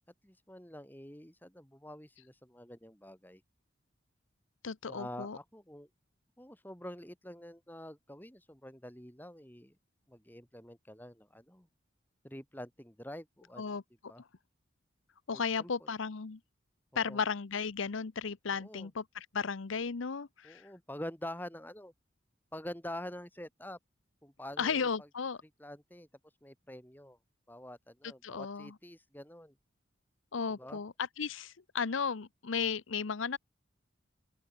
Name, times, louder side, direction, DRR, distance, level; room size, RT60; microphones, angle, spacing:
voice 1, 0.2-3.4 4.8-5.9 6.4-9.7 10.1-11.7 12.2-13.6 14.1-14.2 15.3-15.9 16.9-17.2 18.5-18.9 20.4-21.9 22.5-23.8 24.2-25.1 25.6-26.1 26.4-27.2 27.5-29.5 30.6-30.8, left 1 dB, 10° left, 3.4 m, -46 dB
voice 2, 4.6-5.4 13.6-13.8 15.3-16.4 17.0-20.7 24.6-25.4 28.2-28.7 30.3-33.4, left 5 dB, 80° left, 0.7 m, -35 dB
open air
head